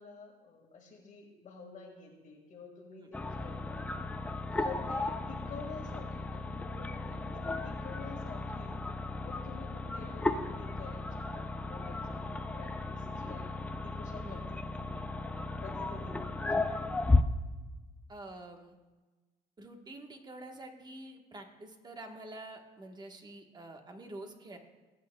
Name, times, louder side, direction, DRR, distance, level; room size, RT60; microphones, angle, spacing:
voice 1, 0.0-3.9 4.6-8.8 9.2-16.4, left 4 dB, 50° left, 0 dB, 1.8 m, -49 dB
sound 1, 3.1-17.2, left 2 dB, 10° left, 0.4 m, -34 dB
voice 2, 18.1-18.7 19.6-24.6, right 2 dB, 25° right, 4 dB, 1.2 m, -47 dB
19.0 x 8.7 x 2.2 m, 1.2 s
cardioid pair, 110°, 17 cm